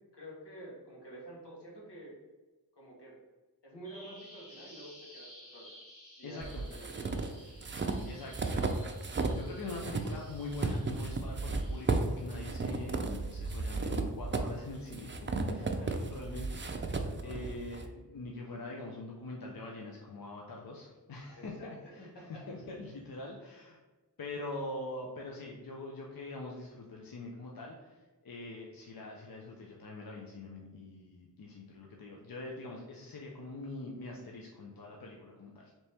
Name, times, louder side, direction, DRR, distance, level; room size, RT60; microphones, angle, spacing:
voice 1, 0.1-2.1 2.7-3.1 3.6-5.6 6.2-7.4 12.8-12.9 15.4-15.9 17.0-17.4 21.4-22.4, right 1 dB, 75° left, -3 dB, 1.4 m, -49 dB
Bird vocalization bird call bird song, 3.8-11.8, left 1 dB, 35° left, 1.3 m, -55 dB
voice 2, 6.2-6.6 8.1-16.9 17.2-21.5 21.9-23.8 24.2-35.6, left 2 dB, 60° left, -1 dB, 0.6 m, -44 dB
sound 1, 6.4-9.4 9.7-17.9, right 3 dB, 30° right, 0.4 m, -34 dB
4.2 x 3.0 x 3.4 m, 1.2 s
wide cardioid pair, 55°, 41 cm